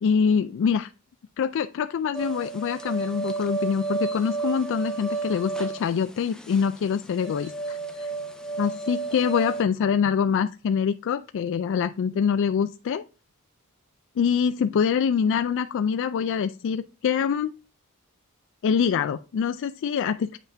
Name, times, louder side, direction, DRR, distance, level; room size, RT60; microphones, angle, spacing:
voice 1, 0.0-0.9 1.4-8.1 8.6-13.0 14.2-17.5 18.6-20.4, left 7 dB, 60° left, 10 dB, 0.3 m, -25 dB
sound 1, 2.1-9.6, right 4 dB, 5° left, 0.8 m, -32 dB
8.6 x 5.6 x 3.4 m, 0.34 s
head